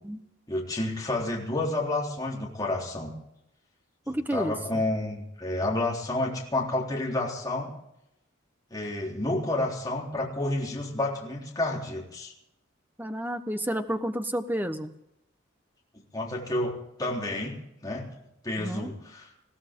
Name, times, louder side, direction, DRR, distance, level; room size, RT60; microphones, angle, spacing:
voice 1, 0.5-3.1 4.1-7.7 8.7-12.3 16.1-16.7 17.0-18.1 18.4-19.3, left 2 dB, 20° left, -3 dB, 3.7 m, -30 dB
voice 2, 4.1-4.8 13.0-14.9 18.6-18.9, equal, 10° right, 8 dB, 1.0 m, -31 dB
21.5 x 15.5 x 3.8 m, 0.81 s
head